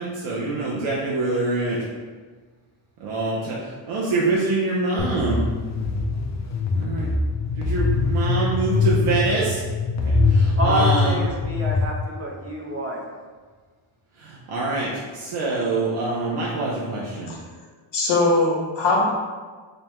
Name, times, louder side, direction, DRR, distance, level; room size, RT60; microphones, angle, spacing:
voice 1, 0.0-1.8 3.0-5.4 6.7-7.1 7.5-9.6 10.0-11.2 14.2-17.3, right 3 dB, 90° right, -5 dB, 0.8 m, -25 dB
sound 1, 5.0-11.8, left 3 dB, 35° left, 0.5 m, -23 dB
voice 2, 10.6-13.0, equal, 30° right, -2 dB, 0.7 m, -27 dB
voice 3, 17.9-19.1, left 2 dB, 60° left, -3 dB, 1.0 m, -20 dB
5.3 x 2.2 x 3.0 m, 1.4 s
wide cardioid pair, 150°, 48 cm